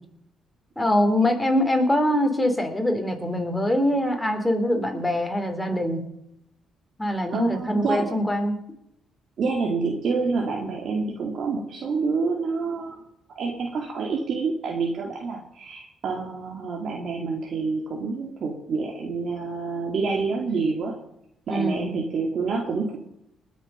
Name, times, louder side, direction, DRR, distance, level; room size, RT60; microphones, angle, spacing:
voice 1, 0.8-6.0 7.0-8.5 21.5-21.9, left 1 dB, 5° left, 4 dB, 3.4 m, -23 dB
voice 2, 7.3-8.1 9.4-13.0 13.4-20.9 21.5-22.9, right 4 dB, 60° right, -1 dB, 2.5 m, -27 dB
20.0 x 7.2 x 5.6 m, 0.77 s
cardioid pair, 90°, 0 cm